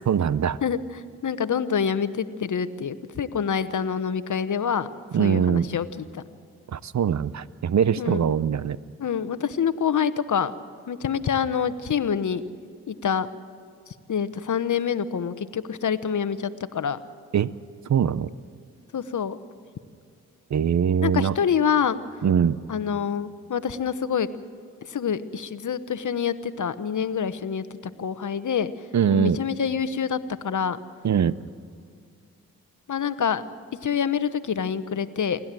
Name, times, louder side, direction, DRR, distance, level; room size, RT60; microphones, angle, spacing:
voice 1, 0.1-0.6 5.1-5.7 6.7-8.8 17.3-17.5 17.9-18.3 20.5-21.3 22.2-22.6 28.9-29.4 31.0-31.4, right 8 dB, 50° right, 18 dB, 0.7 m, -22 dB
voice 2, 0.6-4.9 5.2-5.9 6.1-6.2 8.0-8.2 9.0-10.5 10.9-12.4 12.9-13.3 14.1-17.0 18.9-19.4 21.0-22.0 22.7-24.3 24.9-27.7 28.0-28.7 29.1-30.8 32.9-33.4 33.8-35.4, left 7 dB, 55° left, 13 dB, 1.1 m, -26 dB
28.5 x 12.0 x 7.6 m, 2.3 s
supercardioid pair, 40°, 36 cm